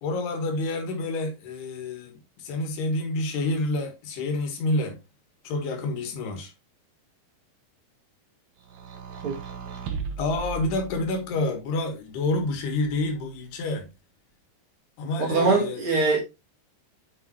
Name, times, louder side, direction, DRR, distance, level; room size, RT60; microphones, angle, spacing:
voice 1, 0.0-5.0 5.5-6.5 10.2-13.9 15.0-15.8, left 2 dB, 80° left, 3.7 m, -28 dB
sound 1, 8.7-11.4 12.3-13.3, right 6 dB, 65° right, 2.7 m, -37 dB
voice 2, 15.2-16.2, right 3 dB, 40° right, 2.7 m, -22 dB
8.7 x 6.3 x 2.9 m
omnidirectional pair, 4.6 m